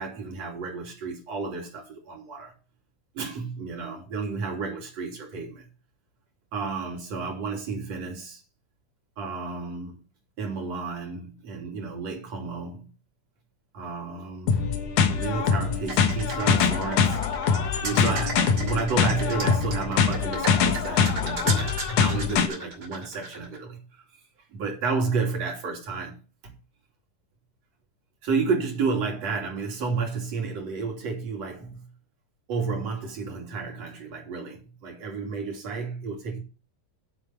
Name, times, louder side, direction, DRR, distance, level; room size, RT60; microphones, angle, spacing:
voice 1, 0.0-2.5 3.1-5.7 6.5-8.4 9.2-10.0 10.4-12.9 13.7-14.6 15.1-17.2 17.8-23.8 24.5-26.1 28.2-31.8 32.5-36.4, right 4 dB, 50° right, 4.0 m, -31 dB
sound 1, 14.5-22.5, left 6 dB, 70° left, 2.6 m, -23 dB
sound 2, 15.9-23.6, right 2 dB, 30° right, 3.0 m, -35 dB
8.6 x 7.7 x 5.8 m
omnidirectional pair, 3.7 m